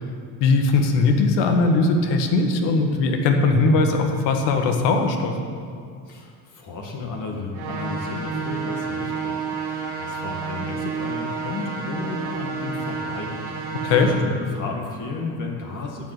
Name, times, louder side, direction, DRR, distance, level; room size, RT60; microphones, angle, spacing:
voice 1, 0.4-5.3 13.8-14.1, left 3 dB, 80° left, 4 dB, 1.6 m, -19 dB
voice 2, 6.1-16.1, left 3 dB, 45° left, 0 dB, 2.0 m, -33 dB
sound 1, 7.5-14.1, right 5 dB, 85° right, 2.5 m, -30 dB
13.0 x 5.4 x 9.1 m, 2.3 s
supercardioid pair, 95°, 42 cm